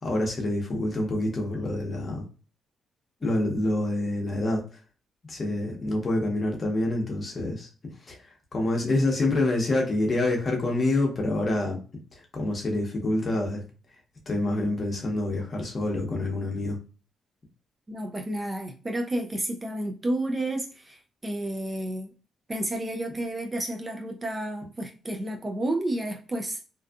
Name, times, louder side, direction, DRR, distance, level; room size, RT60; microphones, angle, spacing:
voice 1, 0.0-2.2 3.2-4.6 5.3-7.7 8.1-8.2 8.5-11.8 12.3-13.6 14.3-16.8, left 2 dB, 35° left, 0 dB, 0.8 m, -27 dB
voice 2, 17.9-22.1 22.5-26.6, right 1 dB, 20° right, 3 dB, 0.3 m, -31 dB
2.6 x 2.3 x 2.3 m, 0.36 s
cardioid pair, 115°, 0 cm